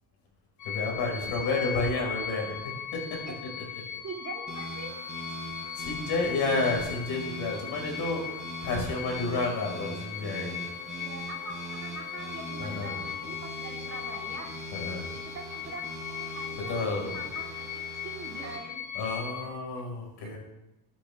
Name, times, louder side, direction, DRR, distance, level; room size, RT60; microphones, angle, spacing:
sound 1, 0.6-19.5, left 9 dB, 50° left, 1.3 m, -39 dB
voice 1, 0.7-3.7 5.7-8.3 8.6-10.7 12.6-13.0 14.7-15.0 16.6-17.3 18.9-20.4, left 3 dB, 90° left, -1 dB, 5.1 m, -31 dB
voice 2, 1.2-1.9 2.2-2.5 3.3-3.4 4.0-5.0 10.8-14.5 15.1-18.9 19.4-19.8 20.2-20.4, right 4 dB, 40° right, 1 dB, 2.4 m, -44 dB
sound 2, 4.5-18.6, right 3 dB, 20° right, 4.2 m, -42 dB
20.5 x 10.0 x 3.5 m, 0.95 s
cardioid pair, 160°, 40 cm